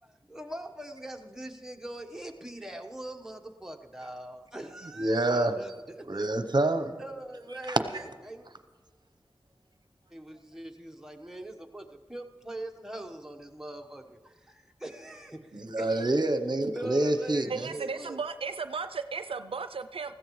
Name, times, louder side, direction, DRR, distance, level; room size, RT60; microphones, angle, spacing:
voice 1, 0.0-6.3 7.0-8.5 10.1-16.1 16.7-18.2, right 1 dB, 5° right, 3 dB, 1.1 m, -42 dB
voice 2, 5.0-5.6 6.1-7.0 7.7-7.8 15.5-17.7, right 2 dB, 50° right, 8 dB, 0.8 m, -27 dB
voice 3, 17.5-20.1, right 5 dB, 85° right, 10 dB, 0.4 m, -35 dB
20.5 x 15.0 x 3.1 m, 1.4 s
wide cardioid pair, 55°, 9 cm